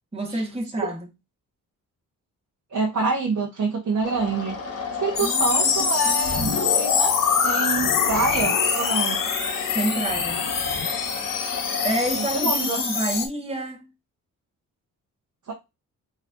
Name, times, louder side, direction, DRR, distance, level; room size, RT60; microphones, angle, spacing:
voice 1, 0.1-1.1 5.2-6.6 9.7-10.4 11.8-13.9, right 1 dB, 15° right, 1.4 m, -29 dB
voice 2, 2.7-4.6 5.0-7.2 7.4-9.2 12.1-12.9 15.5-15.6, right 3 dB, 50° right, 1.2 m, -26 dB
sound 1, 4.0-13.0, left 5 dB, 40° left, 1.3 m, -33 dB
sound 2, 5.2-13.3, left 6 dB, 60° left, 1.0 m, -24 dB
4.1 x 3.1 x 2.6 m
supercardioid pair, 50°, 37 cm